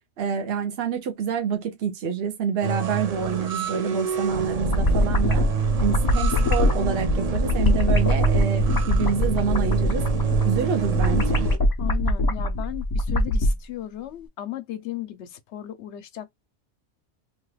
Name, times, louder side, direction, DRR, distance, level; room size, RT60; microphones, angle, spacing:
voice 1, 0.2-5.5 5.8-10.0 10.4-11.5, right 7 dB, 65° right, 0.9 m, -27 dB
sound 1, 2.6-11.5, right 7 dB, 40° right, 0.6 m, -27 dB
sound 2, 4.3-13.5, left 1 dB, 40° left, 0.3 m, -23 dB
voice 2, 11.8-16.3, left 13 dB, 85° left, 0.9 m, -35 dB
3.0 x 2.3 x 3.2 m
omnidirectional pair, 1.1 m